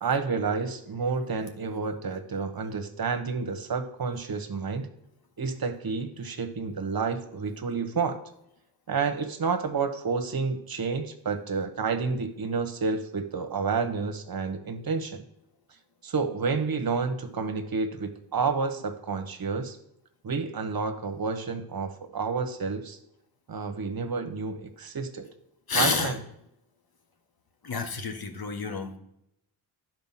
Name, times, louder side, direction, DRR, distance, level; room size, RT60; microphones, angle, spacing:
voice 1, 0.0-4.9 5.4-8.2 8.9-15.2 16.0-19.8 20.2-23.0 23.5-25.3 25.7-26.2, right 5 dB, 50° right, 8 dB, 1.2 m, -30 dB
voice 2, 25.7-26.2 27.6-29.0, left 4 dB, 50° left, 5 dB, 1.6 m, -29 dB
10.5 x 4.6 x 5.8 m, 0.79 s
supercardioid pair, 55°, 47 cm